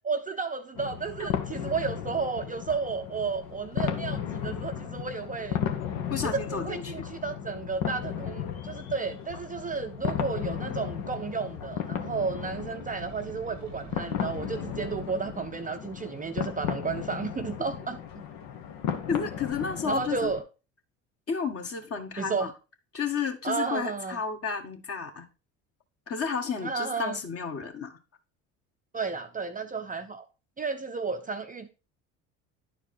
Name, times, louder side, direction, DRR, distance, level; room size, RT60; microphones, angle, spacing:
voice 1, 0.0-5.6 6.2-18.0 19.8-20.4 22.2-22.5 23.4-24.2 26.6-27.2 28.9-30.3 30.6-31.7, right 5 dB, 20° right, 0.6 m, -32 dB
sound 1, 0.8-20.4, left 9 dB, 65° left, 1.3 m, -35 dB
voice 2, 6.1-7.0 19.1-20.3 21.3-22.5 22.9-25.3 26.1-27.9, left 6 dB, 40° left, 1.8 m, -32 dB
sound 2, 11.9-15.8, right 8 dB, 85° right, 1.1 m, -48 dB
10.5 x 4.6 x 4.3 m
hypercardioid pair, 65°, 38 cm